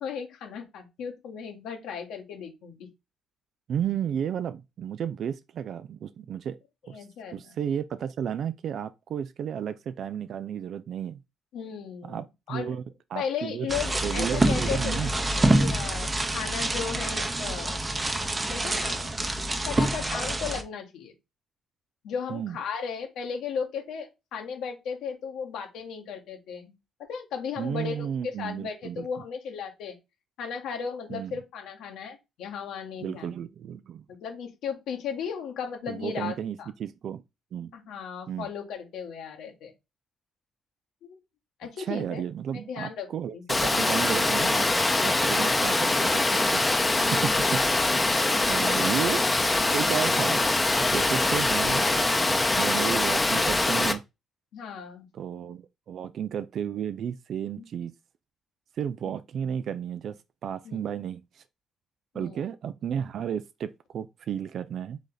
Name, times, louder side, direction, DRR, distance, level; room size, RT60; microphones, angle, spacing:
voice 1, 0.0-2.9 6.8-7.6 11.5-12.2 12.5-12.8 13.1-15.1 15.4-17.8 18.5-19.2 19.6-21.1 22.0-30.0 30.4-33.4 34.1-36.7 37.7-39.7 41.0-41.2 41.6-42.2 42.5-43.1 43.3-43.4 47.0-47.5 48.1-48.8 50.9-51.3 54.5-55.1 57.5-57.6 60.6-60.8 62.1-62.4, left 6 dB, 85° left, 1.4 m, -36 dB
voice 2, 3.7-6.6 6.9-7.0 7.3-11.2 12.0-12.8 13.1-13.7 14.0-15.1 22.3-22.6 27.6-29.1 31.1-31.4 33.0-34.0 35.9-37.2 37.5-37.7 38.3-38.5 41.8-44.7 45.0-46.6 47.1-48.0 48.5-49.3 49.7-50.4 50.8-54.0 55.1-57.9 58.8-61.2 62.1-65.0, right 8 dB, 65° right, 0.3 m, -33 dB
sound 1, 13.7-20.6, right 1 dB, 25° right, 0.8 m, -26 dB
Water, 43.5-53.9, left 2 dB, 15° left, 0.7 m, -23 dB
3.9 x 3.3 x 3.8 m
cardioid pair, 90°, 0 cm